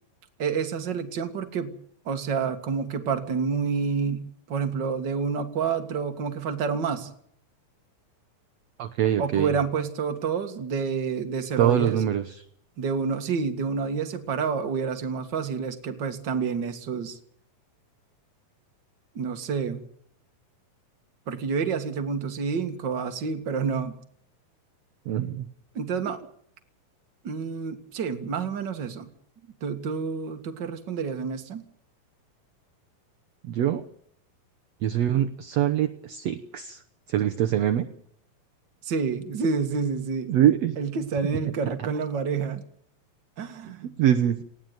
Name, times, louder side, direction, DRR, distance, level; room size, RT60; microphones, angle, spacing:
voice 1, 0.4-1.7 2.1-7.1 9.2-12.0 12.8-17.2 19.2-19.8 21.3-23.9 25.8-26.2 27.2-29.1 29.6-31.6 38.8-40.3 40.8-42.6 43.4-43.9, right 5 dB, 40° right, 6 dB, 1.9 m, -28 dB
voice 2, 8.8-9.5 11.6-12.4 25.0-25.5 26.0-26.1 33.4-33.8 34.8-36.8 37.1-37.9 40.3-40.8 41.6-41.7 43.6-44.4, right 10 dB, 70° right, 9 dB, 1.7 m, -24 dB
19.5 x 16.5 x 9.2 m, 0.65 s
omnidirectional pair, 4.1 m